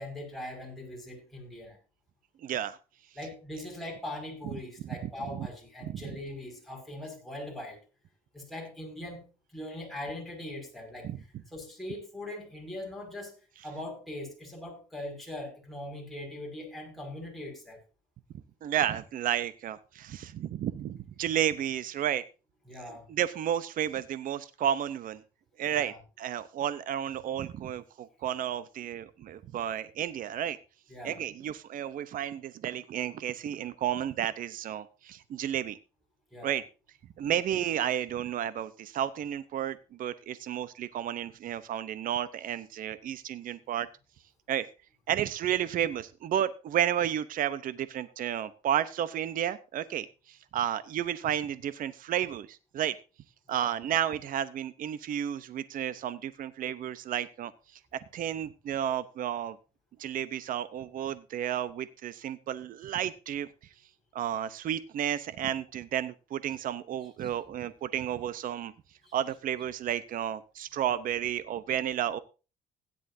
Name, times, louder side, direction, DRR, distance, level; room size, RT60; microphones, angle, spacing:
voice 1, 0.0-1.8 3.2-7.8 8.3-13.4 13.6-17.8 22.7-23.1 25.7-26.0 30.9-31.2 36.3-36.5 53.5-53.7 67.2-67.3 69.0-69.2, left 1 dB, ahead, 5.6 m, -41 dB
voice 2, 2.4-2.8 4.9-5.5 5.8-6.0 11.0-11.2 18.6-22.2 23.1-25.2 25.6-30.6 31.0-35.8 36.4-36.6 37.2-43.9 44.5-44.7 45.1-52.9 53.5-57.5 57.9-59.6 60.0-63.5 64.1-68.7 69.1-72.2, right 10 dB, 55° right, 0.7 m, -32 dB
16.5 x 10.5 x 2.7 m
cardioid pair, 110°, 17 cm